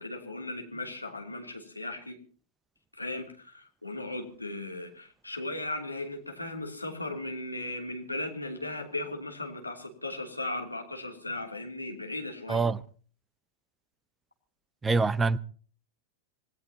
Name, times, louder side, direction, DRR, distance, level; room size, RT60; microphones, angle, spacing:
voice 1, 0.0-2.2 2.9-12.6, left 2 dB, 85° left, 2.9 m, -37 dB
voice 2, 12.5-12.8 14.8-15.4, right 3 dB, 15° right, 0.7 m, -25 dB
26.5 x 18.5 x 2.9 m
figure-of-eight pair, 90°, 0 cm